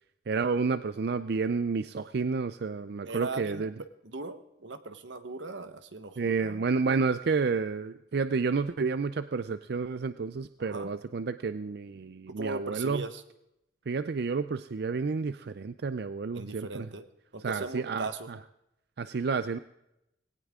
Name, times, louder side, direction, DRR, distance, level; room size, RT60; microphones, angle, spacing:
voice 1, 0.3-3.7 6.2-13.0 13.9-16.9 17.4-18.4 19.0-19.6, right 4 dB, 60° right, 12 dB, 0.4 m, -30 dB
voice 2, 3.0-3.6 4.0-6.6 10.6-10.9 12.3-13.2 16.3-17.1 17.3-18.3, right 3 dB, 85° right, 10 dB, 1.2 m, -38 dB
19.5 x 17.5 x 3.7 m, 0.85 s
head